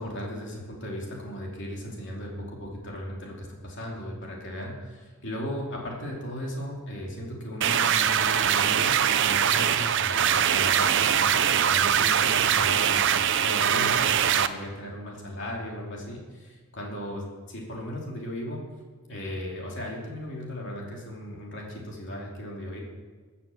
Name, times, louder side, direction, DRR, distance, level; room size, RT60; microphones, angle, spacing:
voice 1, 0.0-18.6 19.1-22.8, equal, 60° left, -2 dB, 2.9 m, -36 dB
sound 1, 7.6-14.5, right 8 dB, 60° right, 0.6 m, -22 dB
20.5 x 7.1 x 7.2 m, 1.4 s
head